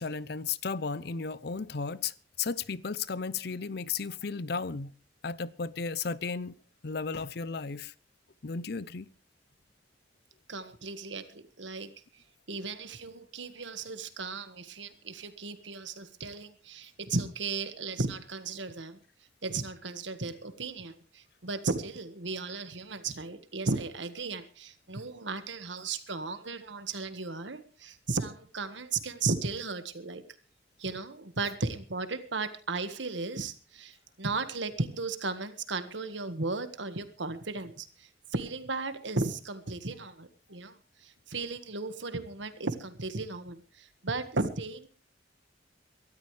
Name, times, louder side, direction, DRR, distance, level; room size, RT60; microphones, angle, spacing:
voice 1, 0.0-4.9 5.2-6.5 6.8-7.9 8.4-9.1 12.5-12.6, left 5 dB, 55° left, 0.6 m, -34 dB
voice 2, 10.5-19.0 19.4-30.2 30.8-44.9, right 3 dB, 75° right, 1.6 m, -35 dB
23.0 x 13.0 x 3.3 m
head